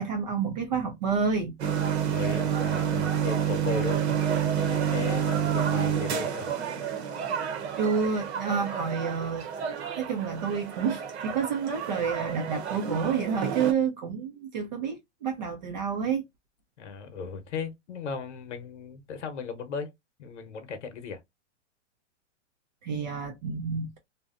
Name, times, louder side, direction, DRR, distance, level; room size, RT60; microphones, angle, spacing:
voice 1, 0.0-1.6 7.8-9.5 10.0-16.2 22.8-24.0, right 6 dB, 40° right, 0.5 m, -29 dB
sound 1, 1.6-13.7, right 8 dB, 60° right, 0.9 m, -29 dB
voice 2, 2.0-6.5 16.8-19.9 20.2-21.2, left 5 dB, 70° left, 0.9 m, -36 dB
2.7 x 2.1 x 2.4 m
hypercardioid pair, 145°, 37 cm